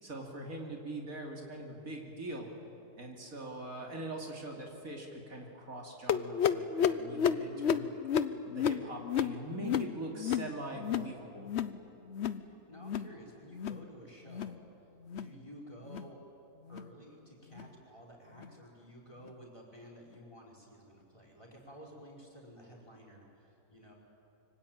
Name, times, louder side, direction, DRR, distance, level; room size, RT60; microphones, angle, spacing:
voice 1, 0.0-2.5 3.0-8.0 8.5-11.5, right 1 dB, 60° right, 0 dB, 3.2 m, -42 dB
sound 1, 6.1-11.1 11.4-11.8 12.1-12.5 12.8-13.1 13.5-13.9 14.3-14.6 15.0-15.3 15.8-16.1 16.7-16.9 17.5-17.7 18.4-18.5 19.3-19.4, left 8 dB, 50° left, 0.9 m, -32 dB
voice 2, 12.3-14.6 15.1-16.2 16.7-24.0, equal, 20° left, -2 dB, 4.9 m, -53 dB
25.5 x 24.5 x 9.0 m, 2.8 s
omnidirectional pair, 1.6 m